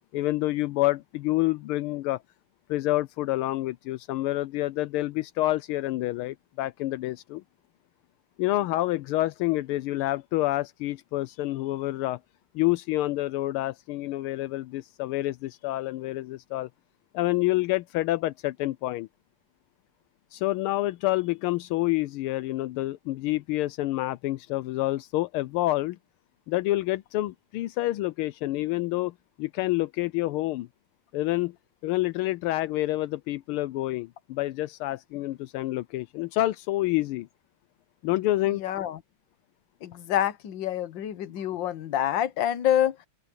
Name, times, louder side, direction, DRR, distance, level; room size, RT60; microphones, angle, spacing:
voice 1, 0.1-2.2 2.7-7.4 8.4-12.2 12.5-16.7 17.1-19.1 20.3-26.0 26.5-30.7 31.1-31.5 31.8-37.3 38.0-38.6, left 17 dB, 85° left, 1.5 m, -28 dB
voice 2, 38.6-39.0 39.8-43.1, left 11 dB, 65° left, 1.7 m, -27 dB
open air
omnidirectional pair, 2.3 m